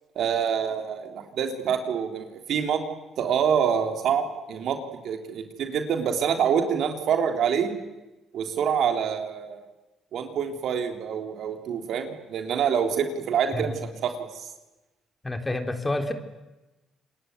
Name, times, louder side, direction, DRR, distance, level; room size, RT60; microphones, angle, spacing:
voice 1, 0.2-2.8 3.2-4.8 5.0-7.7 8.3-9.7 10.1-14.3, right 7 dB, 70° right, 4 dB, 3.4 m, -26 dB
voice 2, 15.2-16.1, left 2 dB, 20° left, 5 dB, 3.8 m, -28 dB
27.5 x 21.5 x 9.6 m, 1.1 s
supercardioid pair, 60°, 0 cm